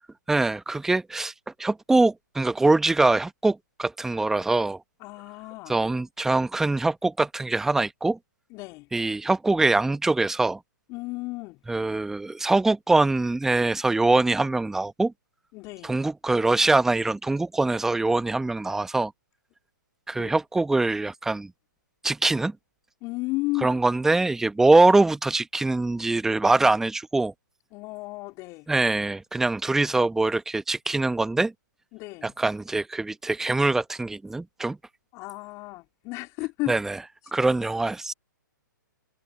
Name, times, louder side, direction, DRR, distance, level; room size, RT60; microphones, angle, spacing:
voice 1, 0.3-1.3 1.6-4.8 5.7-8.2 8.9-10.6 11.7-15.1 15.8-19.1 20.1-21.5 22.0-22.5 23.6-27.3 28.7-31.5 32.2-34.8 36.7-37.0 37.3-38.1, right 2 dB, 5° right, 1.1 m, -23 dB
voice 2, 5.0-5.8 8.5-8.9 10.9-11.6 15.5-15.9 20.1-20.3 23.0-23.8 27.7-28.7 31.9-32.3 35.1-36.8, left 23 dB, 30° left, 4.1 m, -33 dB
figure-of-eight pair, 130°, 11 cm